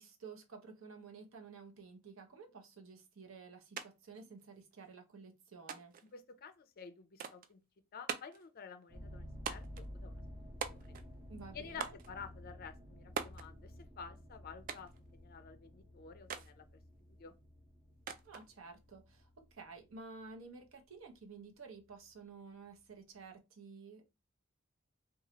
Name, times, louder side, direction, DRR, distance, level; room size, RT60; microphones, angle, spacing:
voice 1, 0.0-6.0 11.3-11.9 18.2-24.0, right 4 dB, 85° right, 0.7 m, -52 dB
sound 1, 3.8-3.9 4.1-4.9 5.7-6.1 7.2-7.5 8.1-8.5 9.5-9.9 10.6-11.1 11.8-12.1 13.2-13.5 14.7-15.0 16.3-16.5 18.1-18.5, right 7 dB, 40° right, 0.3 m, -42 dB
voice 2, 6.1-7.6 7.9-10.2 10.7-10.9 11.5-16.7 17.1-17.4, left 6 dB, 50° left, 0.4 m, -51 dB
sound 2, 8.9-21.2 21.7-22.1 22.7-22.8 23.1-23.2, equal, 20° right, 0.7 m, -53 dB
3.0 x 2.3 x 2.8 m
head